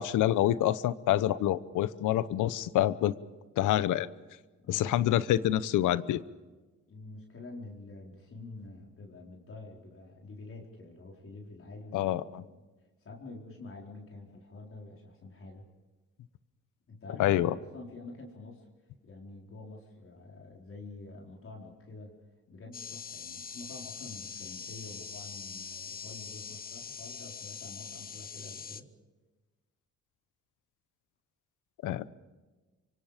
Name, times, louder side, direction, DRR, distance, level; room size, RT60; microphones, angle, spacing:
voice 1, 0.0-3.1 3.6-4.1 4.7-6.2 11.9-12.4 17.2-17.5 31.8-32.1, left 13 dB, 85° left, 17 dB, 0.9 m, -27 dB
voice 2, 4.6-5.2 6.9-12.5 13.0-15.7 16.9-18.7 19.0-22.1 22.5-28.9, left 2 dB, 45° left, -1 dB, 4.5 m, -47 dB
sound 1, 22.7-28.8, left 6 dB, 30° left, 0.9 m, -43 dB
27.0 x 24.0 x 5.1 m, 1.2 s
cardioid pair, 90°, 30 cm